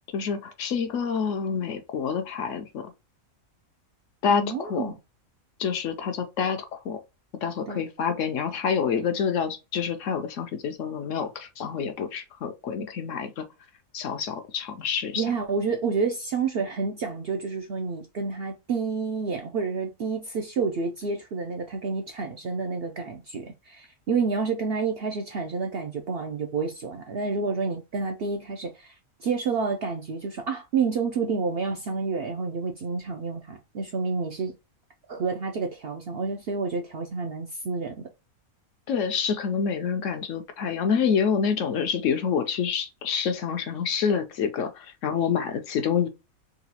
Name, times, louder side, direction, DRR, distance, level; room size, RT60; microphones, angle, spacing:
voice 1, 0.1-2.9 4.2-4.9 5.6-7.0 7.4-13.5 13.9-15.2 38.9-46.1, left 6 dB, 65° left, 0.9 m, -27 dB
voice 2, 4.3-4.9 7.7-7.8 15.1-28.9 29.2-34.5 35.1-38.1, right 4 dB, 65° right, 0.6 m, -29 dB
3.8 x 2.3 x 2.8 m
omnidirectional pair, 1.5 m